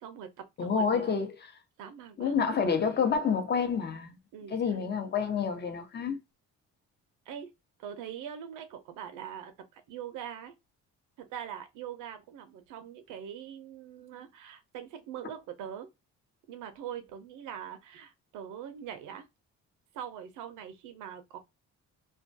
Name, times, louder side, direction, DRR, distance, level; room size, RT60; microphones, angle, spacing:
voice 1, 0.0-1.1 1.8-2.3 4.3-4.8 7.3-7.5 7.8-10.5 11.2-15.9 16.5-19.3 19.9-21.4, right 9 dB, 90° right, 0.5 m, -43 dB
voice 2, 0.6-1.3 2.2-4.2 4.5-6.2, left 6 dB, 35° left, 0.7 m, -28 dB
2.2 x 2.2 x 2.5 m
cardioid pair, 90°, 30 cm